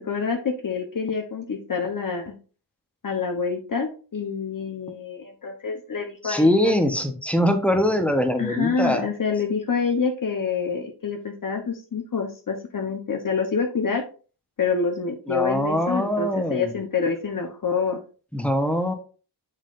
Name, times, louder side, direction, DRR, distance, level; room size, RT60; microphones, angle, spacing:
voice 1, 0.0-2.3 3.0-6.7 8.4-14.0 14.6-18.0, left 5 dB, 50° left, 3 dB, 1.0 m, -27 dB
voice 2, 6.2-9.1 15.3-16.7 18.3-18.9, equal, 5° left, 5 dB, 1.0 m, -22 dB
7.2 x 5.7 x 2.5 m, 0.37 s
wide cardioid pair, 100°, 42 cm